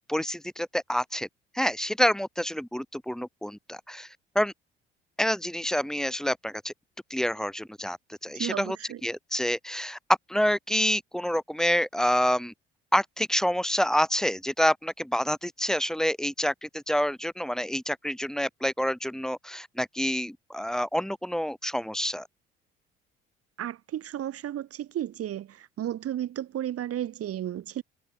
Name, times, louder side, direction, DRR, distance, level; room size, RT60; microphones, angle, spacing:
voice 1, 0.1-1.3 1.5-4.1 4.3-4.5 5.2-6.7 7.1-8.8 9.0-10.0 10.3-12.5 12.9-22.3, equal, ahead, 1.6 m, -27 dB
voice 2, 8.3-9.0 23.6-27.8, right 11 dB, 50° right, 4.9 m, -33 dB
figure-of-eight pair, 50°, 30 cm